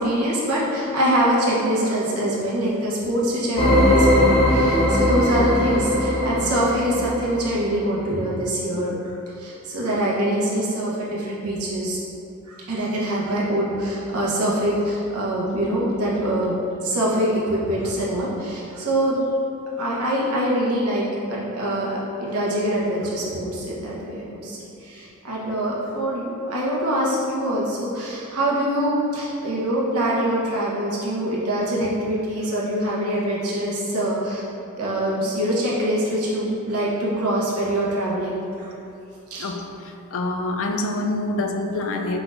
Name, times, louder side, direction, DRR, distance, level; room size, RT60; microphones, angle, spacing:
voice 1, 0.0-12.0 12.5-16.6 16.8-19.2 19.8-34.4 34.8-38.7 39.3-39.5, right 1 dB, 85° right, -5 dB, 1.0 m, -24 dB
sound 1, 3.6-7.9, left 1 dB, 25° left, 0.7 m, -19 dB
voice 2, 39.4-42.2, left 2 dB, 65° left, 3 dB, 0.4 m, -26 dB
4.7 x 4.2 x 2.5 m, 2.8 s
head